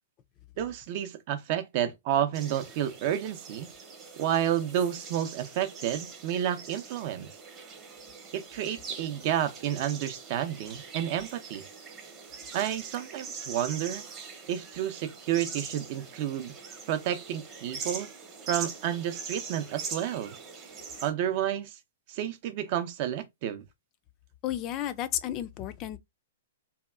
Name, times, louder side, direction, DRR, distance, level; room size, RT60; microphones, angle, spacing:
voice 1, 0.6-3.7 4.2-7.3 8.3-11.6 12.5-14.0 14.5-16.5 16.9-18.1 18.5-20.3 21.0-21.8 22.1-23.6, right 10 dB, 45° right, 0.5 m, -30 dB
sound 1, 2.3-21.1, right 5 dB, 25° right, 0.8 m, -42 dB
voice 2, 24.4-26.0, left 12 dB, 35° left, 0.3 m, -32 dB
2.7 x 2.3 x 2.3 m
hypercardioid pair, 120°, 0 cm